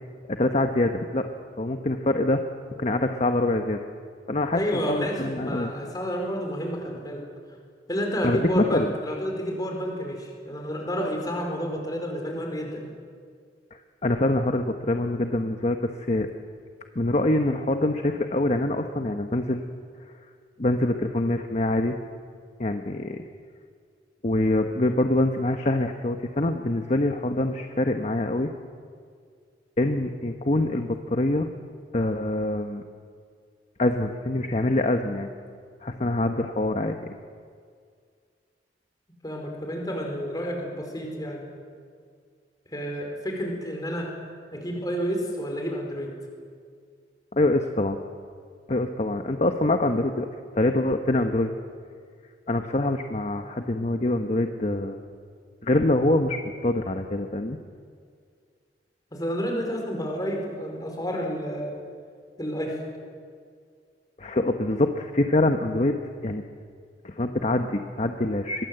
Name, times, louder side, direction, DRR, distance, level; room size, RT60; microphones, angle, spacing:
voice 1, 0.3-1.3 1.6-2.4 2.8-3.8 4.3-5.7 8.2-8.9 13.7-16.3 16.9-19.6 20.6-22.0 22.6-23.2 24.2-28.5 29.8-31.5 31.9-32.8 33.8-35.3 35.8-37.1 47.3-48.0 48.7-50.3 50.5-51.5 52.5-55.0 55.6-57.6 64.2-66.4 67.0-68.6, left 1 dB, 40° left, 6 dB, 1.1 m, -25 dB
voice 2, 4.5-7.2 7.9-12.9 39.2-41.5 42.7-44.1 44.5-46.1 59.1-61.7 62.4-62.8, equal, 20° left, 1 dB, 4.9 m, -30 dB
23.0 x 22.0 x 8.0 m, 2.1 s
head